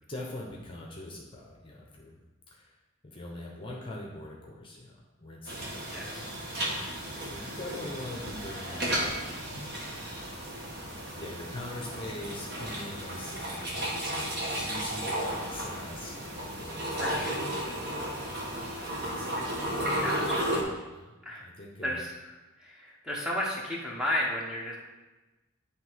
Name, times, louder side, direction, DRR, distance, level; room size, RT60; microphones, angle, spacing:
voice 1, 0.1-2.2 2.5-2.8 3.0-6.4 6.9-10.0 10.5-10.9 11.2-19.4 20.8-22.0, left 1 dB, 25° left, -2 dB, 1.0 m, -44 dB
sound 1, 5.5-20.6, right 1 dB, 50° right, 1.4 m, -34 dB
voice 2, 5.9-6.3 17.0-17.5 20.0-20.5 21.2-21.5 21.8-22.1 22.6-24.8, left 1 dB, 5° right, -3 dB, 1.1 m, -33 dB
10.0 x 3.5 x 4.7 m, 1.2 s
head